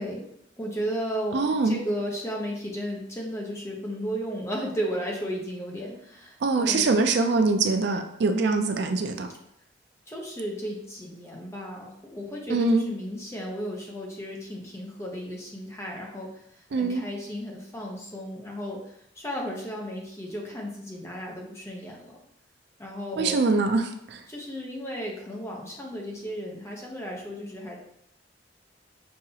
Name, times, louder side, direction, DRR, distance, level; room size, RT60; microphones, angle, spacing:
voice 1, 0.0-7.0 10.1-16.3 16.8-18.8 19.2-22.2 22.8-23.4 24.3-27.8, equal, 15° left, -2 dB, 0.8 m, -34 dB
voice 2, 1.3-1.8 6.4-9.3 12.5-12.9 16.7-17.1 23.2-24.2, right 3 dB, 65° right, 6 dB, 0.4 m, -23 dB
5.4 x 2.8 x 2.8 m, 0.75 s
head